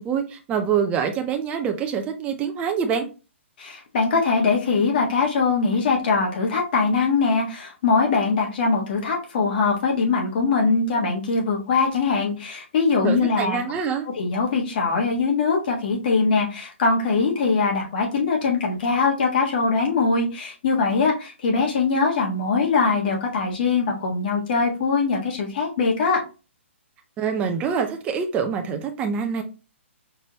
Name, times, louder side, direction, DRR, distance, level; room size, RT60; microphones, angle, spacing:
voice 1, 0.0-3.1 13.0-14.1 27.2-29.4, right 7 dB, 15° right, 0.6 m, -25 dB
voice 2, 3.6-13.6 14.1-26.2, left 4 dB, 45° left, 1.5 m, -22 dB
4.7 x 2.9 x 2.9 m
figure-of-eight pair, 130°, 7 cm